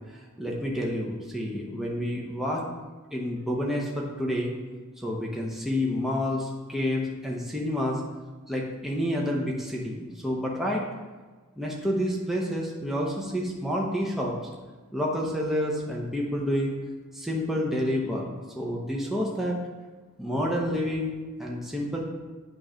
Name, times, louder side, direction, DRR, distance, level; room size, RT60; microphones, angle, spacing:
voice 1, 0.4-2.6 3.1-4.5 5.0-8.0 8.5-10.8 11.6-14.3 14.9-16.7 17.1-18.3 18.6-19.6 20.2-22.0, equal, ahead, -3 dB, 0.7 m, -29 dB
8.8 x 3.1 x 5.0 m, 1.3 s
head